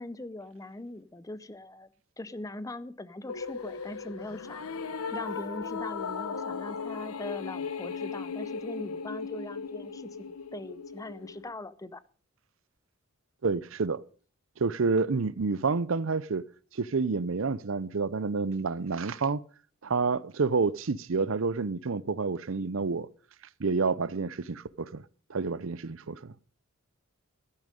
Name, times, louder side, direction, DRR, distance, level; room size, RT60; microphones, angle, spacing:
voice 1, 0.0-1.9 2.2-4.7 5.1-12.0, left 2 dB, 15° left, 0.5 m, -41 dB
sound 1, 3.3-11.5, left 5 dB, 90° left, 0.9 m, -37 dB
voice 2, 13.4-14.0 14.6-16.4 16.7-19.4 19.8-23.1 23.6-25.0 25.3-26.3, right 4 dB, 65° right, 0.6 m, -29 dB
13.0 x 10.5 x 5.3 m
head